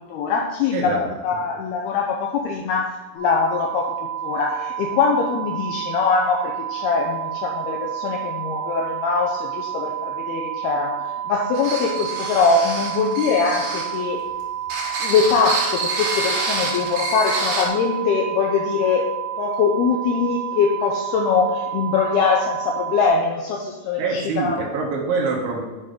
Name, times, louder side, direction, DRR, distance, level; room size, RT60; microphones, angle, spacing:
voice 1, 0.0-14.2 15.0-19.1 19.4-24.6, left 5 dB, 85° left, 0 dB, 2.3 m, -22 dB
voice 2, 0.7-1.1 24.0-25.6, right 4 dB, 80° right, -2 dB, 3.9 m, -24 dB
sound 1, 3.1-23.1, right 10 dB, 65° left, 2.5 m, -30 dB
sound 2, 11.5-14.0 14.6-17.7, right 2 dB, 60° right, 3.4 m, -27 dB
7.9 x 6.6 x 3.7 m, 1.2 s
omnidirectional pair, 5.3 m